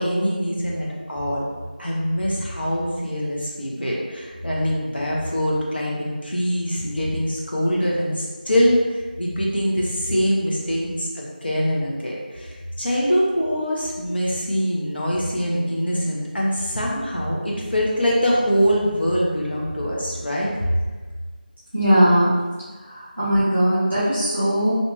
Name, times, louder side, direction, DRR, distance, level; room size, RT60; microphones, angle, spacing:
voice 1, 0.0-1.5 1.8-8.8 9.2-20.5, equal, 85° left, -4 dB, 0.9 m, -23 dB
voice 2, 21.7-22.4 23.2-24.8, equal, 5° right, -19 dB, 0.3 m, -18 dB
2.7 x 2.3 x 2.9 m, 1.4 s
figure-of-eight pair, 175°, 5 cm